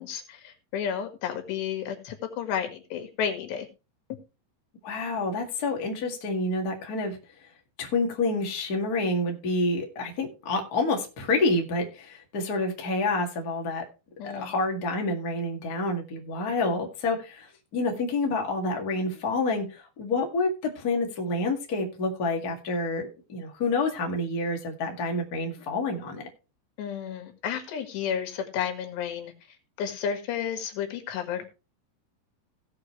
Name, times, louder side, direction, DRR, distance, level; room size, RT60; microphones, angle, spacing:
voice 1, 0.0-3.7 14.2-14.5 26.8-31.5, left 8 dB, 90° left, 6 dB, 4.0 m, -32 dB
voice 2, 4.8-7.2 7.8-13.8 14.2-26.2, left 2 dB, 40° left, 1 dB, 1.4 m, -28 dB
17.5 x 6.9 x 3.1 m, 0.30 s
omnidirectional pair, 4.8 m